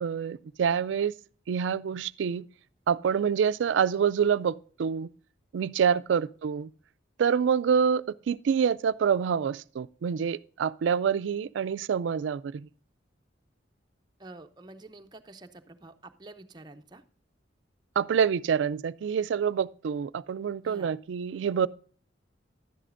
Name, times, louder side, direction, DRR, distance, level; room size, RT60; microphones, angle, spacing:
voice 1, 0.0-1.1 1.5-2.5 2.9-5.1 5.5-6.7 7.2-12.7 18.0-21.7, right 7 dB, 80° right, 0.3 m, -26 dB
voice 2, 14.2-17.0 20.6-20.9, right 2 dB, 25° right, 0.6 m, -48 dB
11.0 x 10.0 x 2.5 m
head